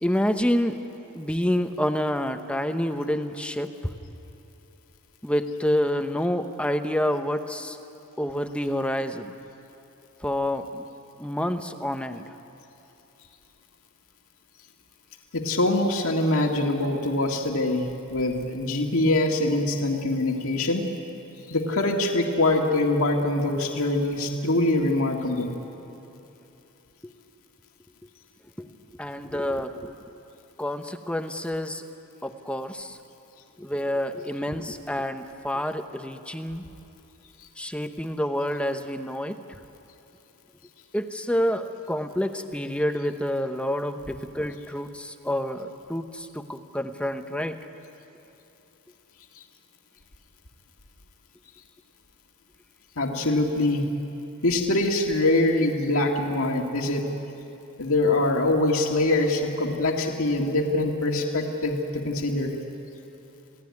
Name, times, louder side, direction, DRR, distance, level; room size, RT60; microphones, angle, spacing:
voice 1, 0.0-0.8 1.1-3.7 5.2-7.8 8.2-9.3 10.2-10.8 11.2-12.2 27.0-27.1 28.6-28.7 28.9-29.9 30.6-31.8 32.2-33.0 33.6-36.6 37.6-39.6 40.9-47.6, equal, 5° left, 7 dB, 0.9 m, -28 dB
voice 2, 15.3-17.8 18.1-20.8 21.5-25.5 53.0-53.8 54.4-57.0 57.8-62.5, left 2 dB, 70° left, 1 dB, 2.1 m, -24 dB
28.5 x 17.5 x 9.7 m, 2.9 s
head